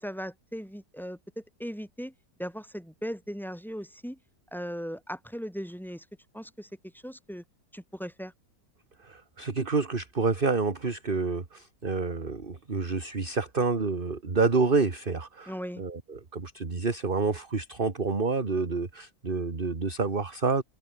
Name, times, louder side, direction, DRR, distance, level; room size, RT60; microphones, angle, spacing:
voice 1, 0.0-2.1 2.4-4.2 4.5-6.1 6.3-7.4 7.7-8.3 15.5-15.8, equal, ahead, 7.9 m, -38 dB
voice 2, 9.0-15.5 15.8-20.6, right 4 dB, 30° right, 2.1 m, -28 dB
omnidirectional pair, 1.9 m